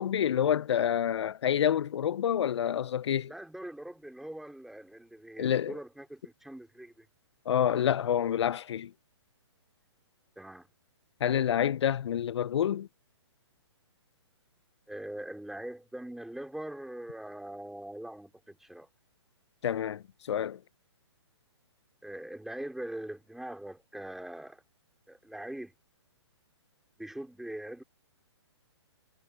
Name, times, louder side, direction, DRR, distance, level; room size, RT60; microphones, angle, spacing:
voice 1, 0.0-3.3 5.4-5.7 7.5-8.9 11.2-12.9 19.6-20.6, left 9 dB, 70° left, 0.5 m, -28 dB
voice 2, 3.3-7.1 10.4-10.7 14.9-18.9 22.0-24.6 25.1-25.7 27.0-27.8, right 1 dB, ahead, 2.6 m, -42 dB
hypercardioid pair, 140°, 15 cm